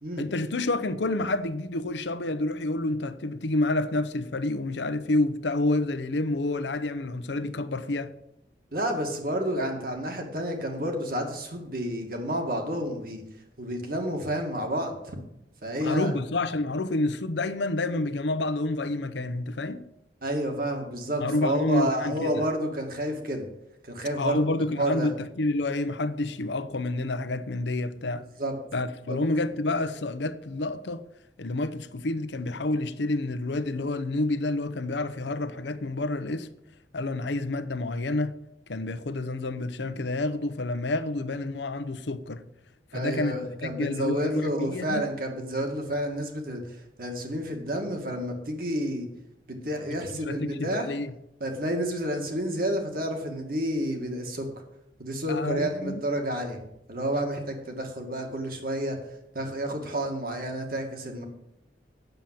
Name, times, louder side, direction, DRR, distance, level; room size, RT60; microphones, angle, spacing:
voice 1, 0.2-8.1 15.8-19.9 21.2-22.4 24.2-28.3 28.7-31.0 31.4-36.5 36.9-38.3 38.7-42.4 42.9-45.0 49.9-51.1 55.3-56.0, left 2 dB, 75° left, 0.7 m, -29 dB
voice 2, 8.7-13.2 13.6-15.2 15.6-16.1 20.2-23.4 23.8-24.5 24.8-25.1 28.4-28.5 29.1-29.2 42.9-49.1 49.5-50.9 51.4-54.5 55.0-56.6 56.9-59.0 59.3-61.2, right 1 dB, 55° right, 2.0 m, -30 dB
9.1 x 7.1 x 7.6 m
head